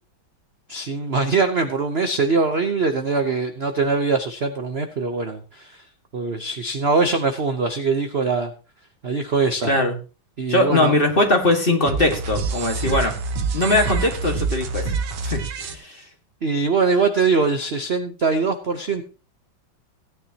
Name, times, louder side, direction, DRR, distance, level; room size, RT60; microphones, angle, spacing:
voice 1, 0.7-5.7 6.1-8.5 9.0-9.7 10.4-10.9 16.4-19.0, right 4 dB, 45° right, 6 dB, 0.8 m, -22 dB
voice 2, 9.6-10.0 10.5-13.2 13.5-14.9 15.2-16.0, left 2 dB, 30° left, 3 dB, 1.9 m, -20 dB
sound 1, 11.9-15.7, right 4 dB, 90° right, 1.9 m, -26 dB
16.5 x 9.8 x 2.9 m, 0.34 s
omnidirectional pair, 2.2 m